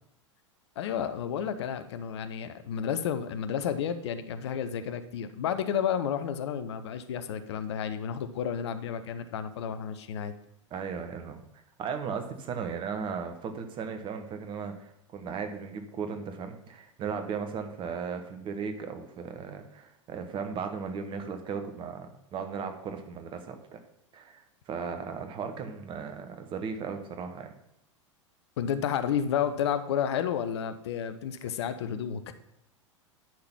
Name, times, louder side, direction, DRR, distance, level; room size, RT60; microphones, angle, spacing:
voice 1, 0.8-10.3 28.6-32.3, left 8 dB, 55° left, 11 dB, 0.7 m, -31 dB
voice 2, 10.7-23.8 24.1-27.5 31.4-31.5, right 6 dB, 30° right, 7 dB, 1.1 m, -36 dB
10.5 x 4.0 x 5.8 m, 0.81 s
figure-of-eight pair, 90°, 16 cm